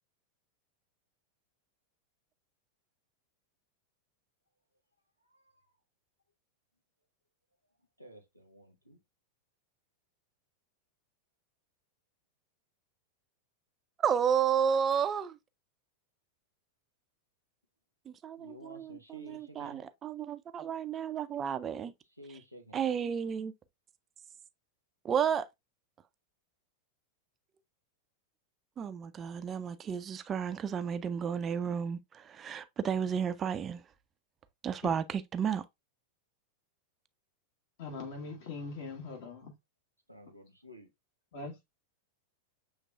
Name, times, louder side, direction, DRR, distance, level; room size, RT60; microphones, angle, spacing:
voice 1, 8.0-9.0 18.4-19.8 22.2-22.8 40.1-40.9, equal, 90° left, 0.7 m, -52 dB
voice 2, 14.0-15.4 18.1-21.9 22.3-22.4 22.7-23.5 25.0-25.5 28.8-33.8 34.6-35.6, right 7 dB, 25° right, 0.3 m, -32 dB
voice 3, 37.8-39.5 41.3-41.7, left 3 dB, 50° left, 1.4 m, -41 dB
6.7 x 3.2 x 2.3 m
figure-of-eight pair, 90°, 0 cm